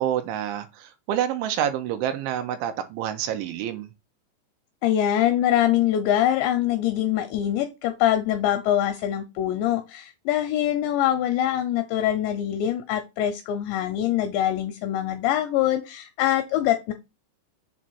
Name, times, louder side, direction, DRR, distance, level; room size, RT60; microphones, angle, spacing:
voice 1, 0.0-3.9, right 10 dB, 85° right, 3.0 m, -28 dB
voice 2, 4.8-16.9, left 11 dB, 85° left, 2.5 m, -24 dB
7.4 x 2.5 x 5.4 m
omnidirectional pair, 5.5 m